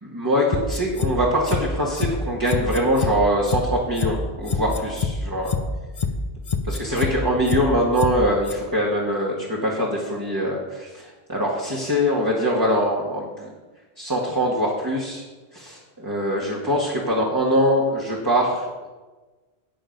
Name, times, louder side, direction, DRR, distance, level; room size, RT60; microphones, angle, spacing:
voice 1, 0.0-5.5 6.7-13.5 14.0-15.2 15.5-18.9, equal, 20° right, -4 dB, 1.4 m, -23 dB
sound 1, 0.5-1.1 1.5-1.6 2.0-2.1 2.5-3.1 3.5-3.6 4.0-4.1 4.5-5.1 5.5-5.6 6.0-6.1 6.5-7.1 7.5-7.6 8.0-8.1 8.5-8.6, left 6 dB, 40° left, 0.7 m, -24 dB
9.0 x 7.7 x 5.2 m, 1.2 s
omnidirectional pair, 1.1 m